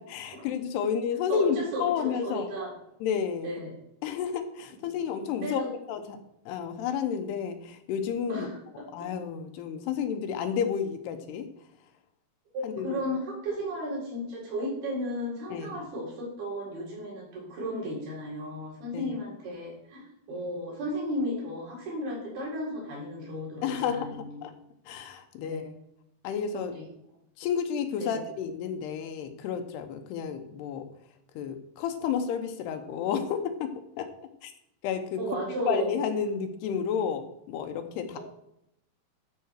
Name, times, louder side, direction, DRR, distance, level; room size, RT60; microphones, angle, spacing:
voice 1, 0.0-2.5 3.0-3.6 4.0-5.6 5.9-6.2 6.5-8.5 8.9-11.5 12.6-13.0 15.5-15.8 18.9-19.1 23.6-24.5 24.9-25.6 26.2-26.8 27.4-30.8 31.4-34.1 34.4-34.5 34.8-35.2 35.7-38.2, left 7 dB, 90° left, 7 dB, 3.1 m, -31 dB
voice 2, 1.3-2.7 3.4-3.7 5.4-5.7 8.3-8.6 9.0-9.1 12.5-24.4 25.4-25.7 26.7-26.8 28.0-28.2 35.2-36.0, equal, 70° right, -4 dB, 5.9 m, -34 dB
12.5 x 4.8 x 6.5 m, 0.80 s
omnidirectional pair, 4.6 m